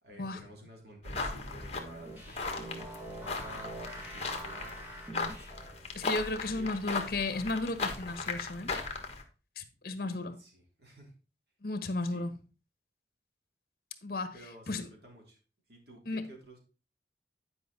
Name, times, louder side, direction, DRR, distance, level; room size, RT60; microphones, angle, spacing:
voice 1, 0.0-4.8 6.3-7.0 10.0-11.1 12.0-12.3 14.3-15.4 15.7-16.6, right 1 dB, 60° right, 3.2 m, -53 dB
sound 1, 1.0-9.2, left 3 dB, 35° left, 1.4 m, -38 dB
sound 2, 1.4-5.9, right 1 dB, 10° right, 2.1 m, -45 dB
voice 2, 5.9-8.7 9.6-10.4 11.6-12.3 14.0-14.3 14.7-14.9 16.1-16.3, left 2 dB, 55° left, 1.2 m, -34 dB
10.0 x 5.3 x 4.0 m
head